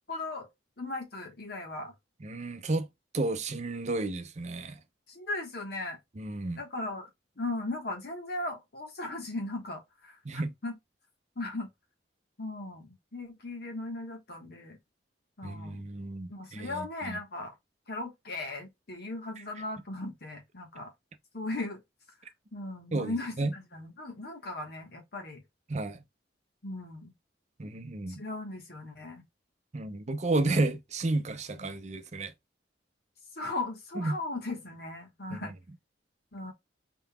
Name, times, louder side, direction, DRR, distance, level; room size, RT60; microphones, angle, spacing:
voice 1, 0.1-0.5 0.8-1.9 5.1-6.0 6.5-7.1 7.4-10.8 11.4-11.7 12.4-14.8 15.4-15.8 16.3-17.6 17.9-20.9 21.3-21.8 22.5-25.4 26.6-27.1 28.1-29.2 31.6-31.8 33.4-35.5 36.3-36.5, left 2 dB, 60° left, 1.3 m, -37 dB
voice 2, 2.2-2.9 3.1-4.8 6.2-6.6 10.3-10.5 15.4-17.2 22.9-23.5 25.7-26.0 27.6-28.2 29.7-32.3 34.0-34.2 35.3-35.5, right 2 dB, 40° right, 0.6 m, -32 dB
3.9 x 3.9 x 2.2 m
head